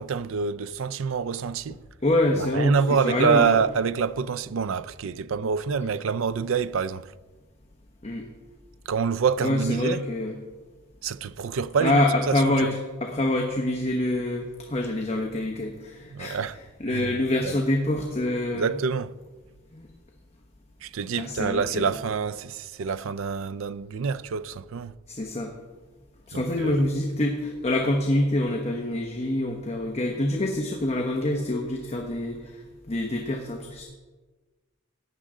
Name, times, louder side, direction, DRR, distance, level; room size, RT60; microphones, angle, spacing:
voice 1, 0.0-1.8 2.4-7.1 8.9-10.0 11.0-12.5 16.1-16.6 16.9-17.1 17.4-17.5 18.5-19.1 20.8-24.9 26.3-26.8, right 5 dB, 70° right, 0.4 m, -26 dB
voice 2, 2.0-3.6 8.0-8.3 9.4-10.4 11.8-16.4 16.8-18.8 19.7-19.9 21.2-21.9 25.1-25.5 26.3-33.8, left 1 dB, 30° left, 0.9 m, -26 dB
15.0 x 9.9 x 3.7 m
head